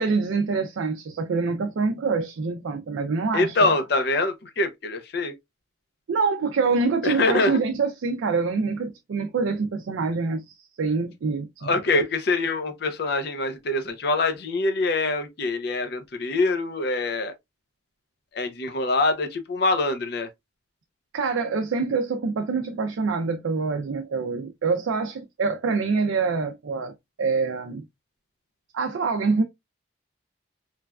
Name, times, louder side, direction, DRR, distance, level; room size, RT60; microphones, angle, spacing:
voice 1, 0.0-3.7 6.1-12.0 21.1-27.8 28.7-29.4, right 4 dB, 80° right, 0.4 m, -26 dB
voice 2, 3.3-5.3 7.0-7.6 11.6-17.3 18.3-20.3, left 2 dB, 55° left, 0.5 m, -24 dB
3.1 x 2.2 x 2.3 m
head